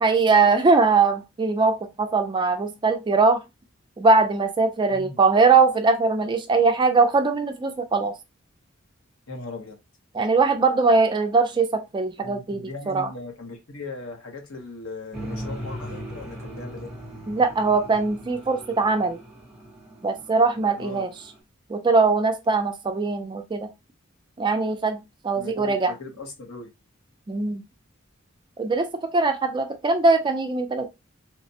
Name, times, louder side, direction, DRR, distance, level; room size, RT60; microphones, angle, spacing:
voice 1, 0.0-3.4 4.0-8.1 10.1-13.1 17.3-19.2 20.0-21.1 21.7-23.7 24.4-25.9 27.3-27.6 28.6-30.9, right 4 dB, 20° right, 0.3 m, -21 dB
voice 2, 9.3-9.8 12.2-16.9 20.8-21.1 25.4-26.7, left 3 dB, 85° left, 0.9 m, -38 dB
sound 1, 15.1-21.4, equal, 5° right, 0.8 m, -39 dB
3.2 x 2.1 x 2.7 m
head